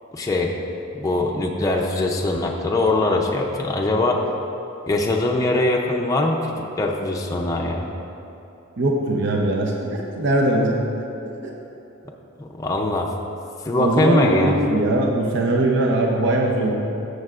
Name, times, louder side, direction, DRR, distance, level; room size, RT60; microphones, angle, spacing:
voice 1, 0.1-0.6 1.0-4.2 4.9-7.9 12.4-13.1 13.6-14.6, left 2 dB, 15° left, -1 dB, 0.5 m, -22 dB
voice 2, 8.8-10.8 13.8-16.7, right 1 dB, 55° right, 0 dB, 0.7 m, -20 dB
14.0 x 6.6 x 2.4 m, 3.0 s
head